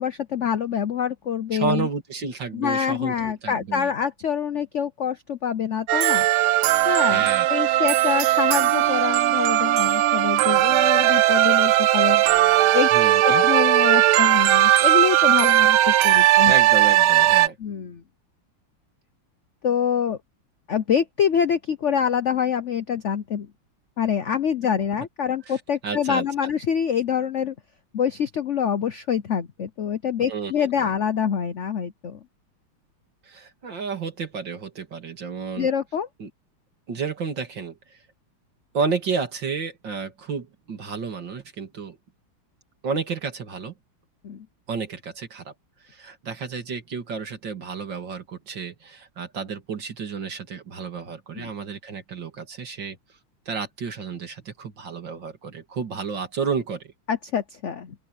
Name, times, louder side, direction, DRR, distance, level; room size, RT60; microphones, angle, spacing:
voice 1, 0.0-1.9 2.5-6.3 6.8-12.2 12.7-12.9 13.2-16.5 17.6-18.0 19.6-20.2 20.7-23.5 24.0-27.5 27.9-32.2 35.6-36.1 44.2-44.5 51.4-51.5 57.1-57.9, left 8 dB, 80° left, 0.6 m, -25 dB
voice 2, 1.5-3.1 3.4-3.9 7.1-7.5 12.9-13.4 16.4-17.6 25.5-26.2 30.3-30.9 33.2-35.7 36.2-36.3 36.9-38.0 38.7-42.0 42.8-43.7 44.7-45.5 45.8-53.0 53.5-56.9, right 5 dB, 60° right, 3.1 m, -31 dB
sound 1, 5.9-17.5, right 14 dB, 90° right, 1.5 m, -18 dB
open air
omnidirectional pair, 2.3 m